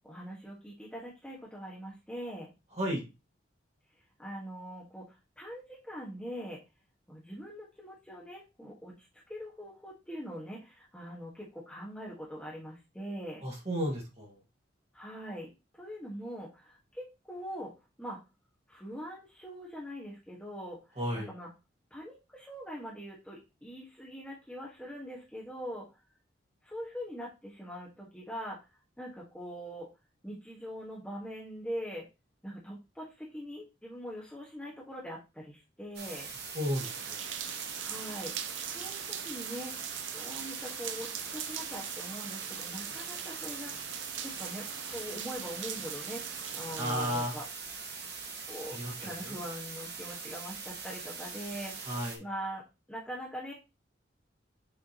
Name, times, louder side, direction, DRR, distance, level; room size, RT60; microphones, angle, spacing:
voice 1, 0.0-2.5 4.2-5.0 5.4-6.6 7.1-8.9 9.3-13.4 14.9-15.5 15.8-17.7 18.0-18.2 18.7-20.8 21.1-21.5 21.9-25.9 26.6-28.6 29.0-29.9 30.2-32.0 32.4-36.3 37.8-38.3 38.7-39.7 40.1-46.2 46.5-47.4 48.5-51.9 52.2-52.6 52.9-53.5, equal, 5° left, -4 dB, 1.5 m, -42 dB
voice 2, 2.7-3.1 13.4-14.4 21.0-21.3 36.5-37.2 46.8-47.3 48.7-49.4 51.9-52.2, equal, 35° right, -2 dB, 2.0 m, -33 dB
sound 1, 35.9-52.2, right 5 dB, 60° right, 1.6 m, -42 dB
sound 2, 36.7-47.3, right 9 dB, 85° right, 0.7 m, -41 dB
6.8 x 4.9 x 3.0 m, 0.26 s
head